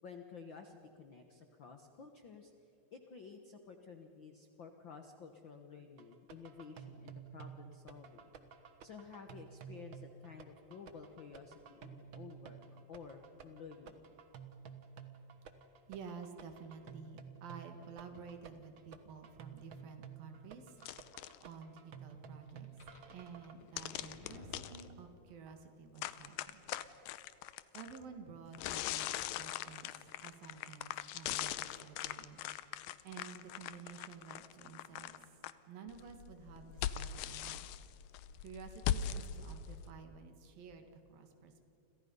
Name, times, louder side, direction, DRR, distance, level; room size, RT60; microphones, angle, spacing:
voice 1, 0.0-2.5 2.9-8.3 8.8-12.6 12.9-14.1, left 5 dB, 60° left, 5 dB, 1.3 m, -52 dB
sound 1, 6.0-23.5, right 7 dB, 60° right, 1.3 m, -53 dB
voice 2, 15.9-20.8 21.4-22.7 23.1-26.6 27.7-29.1 29.4-32.8 33.0-35.3 35.7-37.7 38.4-41.7, right 6 dB, 85° right, 6 dB, 3.7 m, -52 dB
sound 2, 20.8-21.4 23.8-24.8 26.0-28.0 28.5-35.5 35.9-39.9, left 11 dB, 85° left, 2.4 m, -40 dB
sound 3, 22.5-25.4, left 2 dB, 40° left, 3.2 m, -55 dB
30.0 x 26.5 x 5.5 m, 2.6 s
omnidirectional pair, 4.0 m